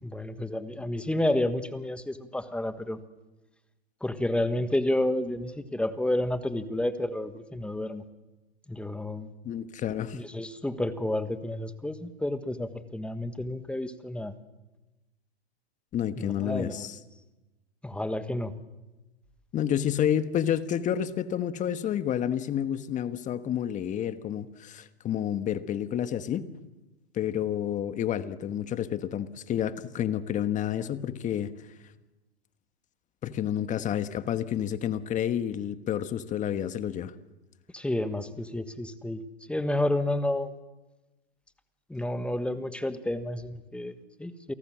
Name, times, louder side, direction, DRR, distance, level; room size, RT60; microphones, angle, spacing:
voice 1, 0.0-3.0 4.0-8.0 8.7-9.3 10.1-14.3 16.2-16.9 17.8-18.5 37.7-39.2 39.5-40.5 41.9-44.5, left 1 dB, 5° left, 1.4 m, -30 dB
voice 2, 9.4-10.2 15.9-17.0 19.5-26.5 27.1-31.5 33.2-37.1, left 10 dB, 25° left, 1.3 m, -29 dB
29.0 x 18.0 x 7.5 m
hypercardioid pair, 120°, 33 cm